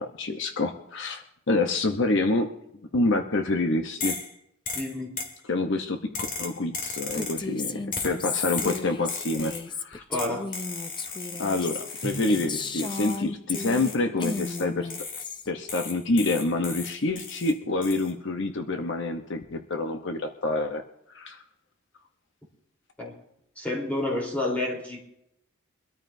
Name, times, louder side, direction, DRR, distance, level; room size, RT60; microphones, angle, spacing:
voice 1, 0.0-2.5 2.9-4.2 5.5-10.0 11.4-14.9 15.5-20.8 21.1-21.4, left 2 dB, 65° left, 5 dB, 0.9 m, -27 dB
sound 1, 4.0-4.3 4.7-5.4 6.1-7.5 7.9-8.2 8.6-9.7 10.2-12.5 12.8-13.2 13.5-15.3 15.7-17.5 17.8-18.1, left 4 dB, 45° left, 2.0 m, -36 dB
voice 2, 4.7-5.2 10.1-10.5 23.0-23.1 23.6-25.0, left 2 dB, 10° left, -2 dB, 3.8 m, -29 dB
Female speech woman speaking, 7.1-13.9 14.2-15.5, left 4 dB, 25° left, 0.6 m, -34 dB
Drum, 12.0-14.7, right 1 dB, 80° left, 7.4 m, -43 dB
24.0 x 13.0 x 2.7 m, 0.78 s
head